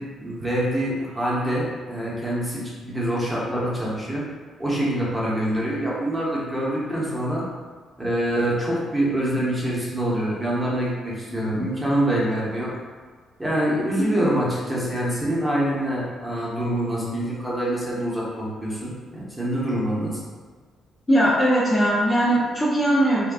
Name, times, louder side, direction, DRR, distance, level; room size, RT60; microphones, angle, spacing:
voice 1, 0.0-4.2 4.6-7.4 8.0-12.7 13.4-20.2, right 1 dB, 15° right, -6 dB, 0.9 m, -25 dB
voice 2, 14.0-14.3 21.1-23.3, right 1 dB, 20° left, -6 dB, 0.5 m, -20 dB
3.6 x 2.2 x 2.3 m, 1.5 s
cardioid pair, 90°, 0 cm